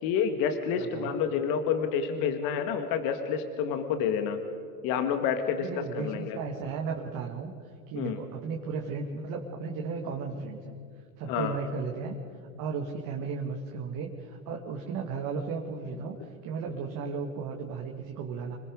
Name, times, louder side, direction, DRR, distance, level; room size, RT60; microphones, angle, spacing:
voice 1, 0.0-4.4 4.8-5.7 5.9-6.4 8.0-8.2 11.3-11.6, left 7 dB, 50° left, 7 dB, 2.0 m, -28 dB
voice 2, 0.8-1.2 5.6-10.8 11.2-12.2 12.6-18.6, right 5 dB, 45° right, 1 dB, 2.3 m, -35 dB
27.0 x 19.0 x 5.4 m, 2.3 s
hypercardioid pair, 110°, 45 cm